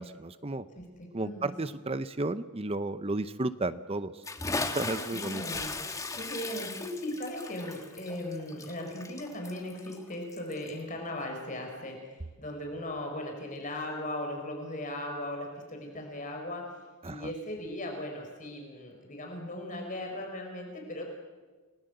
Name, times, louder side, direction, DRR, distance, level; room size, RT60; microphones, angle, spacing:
voice 1, 0.0-0.7 1.1-4.2 4.7-5.4 17.0-17.3, right 2 dB, 25° right, 13 dB, 0.7 m, -33 dB
voice 2, 0.7-1.5 4.9-5.7 6.1-16.7 17.0-21.0, left 1 dB, 35° left, 2 dB, 4.6 m, -38 dB
Bathtub (filling or washing) / Splash splatter, 4.2-10.8, left 3 dB, 15° left, 1.6 m, -37 dB
29.5 x 20.0 x 8.0 m, 1.3 s
head